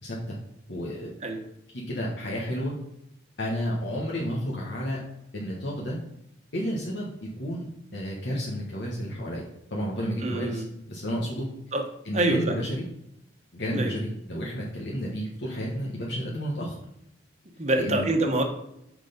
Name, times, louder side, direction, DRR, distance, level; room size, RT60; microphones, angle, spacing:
voice 1, 0.0-0.4 0.7-1.1 1.7-2.7 3.4-5.0 5.3-6.0 6.5-7.1 7.4-7.6 7.9-11.5 12.0-12.8 13.5-16.8 17.8-18.1, equal, 70° left, -4 dB, 1.5 m, -31 dB
voice 2, 10.2-10.6 11.7-11.8 12.1-12.4 13.7-13.9 17.6-18.4, right 2 dB, 40° right, 4 dB, 1.1 m, -25 dB
6.6 x 6.1 x 5.2 m, 0.79 s
head